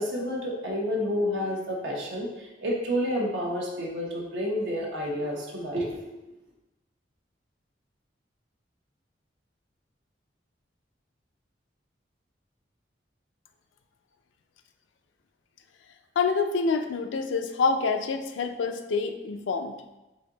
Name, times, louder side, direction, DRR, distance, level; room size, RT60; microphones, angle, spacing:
voice 1, 0.0-6.1, equal, 85° right, -3 dB, 0.9 m, -30 dB
voice 2, 16.2-19.8, left 4 dB, 90° left, 7 dB, 0.4 m, -27 dB
4.0 x 2.7 x 3.8 m, 1.0 s
head